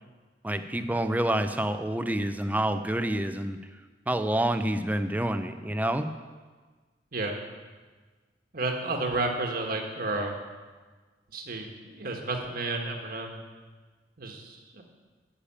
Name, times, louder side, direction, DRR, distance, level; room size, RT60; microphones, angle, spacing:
voice 1, 0.4-3.6 4.1-6.1, right 1 dB, 10° right, 9 dB, 0.6 m, -28 dB
voice 2, 8.5-10.4 11.3-13.4 14.2-14.8, right 2 dB, 55° right, 2 dB, 1.5 m, -31 dB
10.0 x 6.9 x 8.6 m, 1.4 s
head